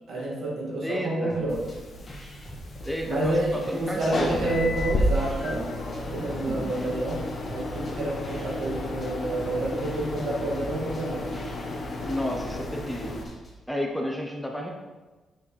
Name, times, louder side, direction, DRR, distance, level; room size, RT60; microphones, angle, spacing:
voice 1, 0.1-1.7 3.1-5.7 6.0-11.3, right 1 dB, 65° right, -4 dB, 2.0 m, -29 dB
voice 2, 0.8-1.5 2.8-4.6 6.1-6.8 12.1-13.3 13.7-14.7, left 1 dB, ahead, 0 dB, 0.5 m, -32 dB
sound 1, 1.3-1.8 2.1-4.1 4.4-6.0 6.3-13.6, right 1 dB, 20° left, 1.7 m, -46 dB
sound 2, 1.5-13.2, left 1 dB, 40° left, 1.0 m, -32 dB
6.9 x 6.1 x 3.2 m, 1.2 s
wide cardioid pair, 175°, 0 cm